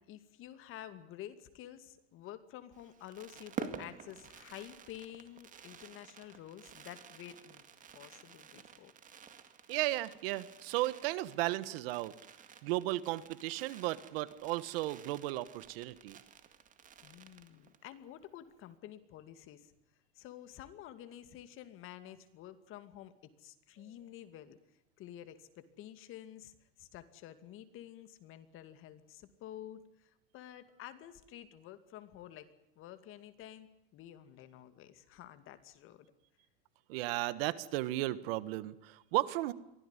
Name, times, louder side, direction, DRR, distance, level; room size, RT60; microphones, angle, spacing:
voice 1, 0.0-7.6 7.9-8.9 17.0-19.7 20.1-23.1 23.4-24.6 25.0-32.5 32.8-36.1, left 12 dB, 45° left, 11 dB, 2.4 m, -50 dB
Fireworks, 2.7-17.9 18.2-18.3 18.5-18.8, right 7 dB, 25° right, 2.1 m, -50 dB
voice 2, 9.7-12.1 12.6-16.2 36.9-39.5, right 17 dB, 70° right, 16 dB, 1.5 m, -35 dB
23.5 x 16.5 x 9.9 m, 0.87 s
supercardioid pair, 135°, 30 cm